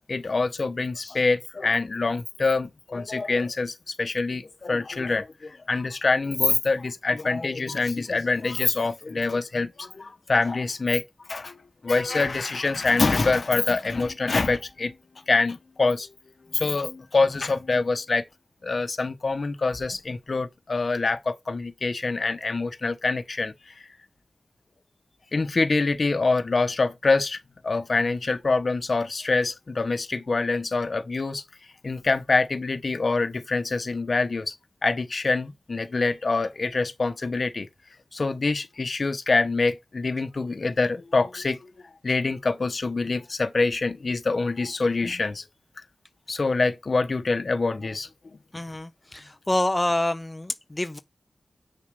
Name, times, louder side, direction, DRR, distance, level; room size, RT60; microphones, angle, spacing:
voice 1, 0.1-11.0 11.3-11.6 11.8-15.0 15.3-16.1 16.5-18.2 18.6-23.7 25.3-27.4 27.6-31.4 31.8-34.5 34.8-37.7 38.1-41.6 42.0-45.4 46.3-48.1, left 3 dB, 50° left, 1.0 m, -25 dB
voice 2, 48.5-51.0, left 1 dB, 15° left, 0.4 m, -27 dB
7.8 x 6.6 x 5.2 m
wide cardioid pair, 120°, 0 cm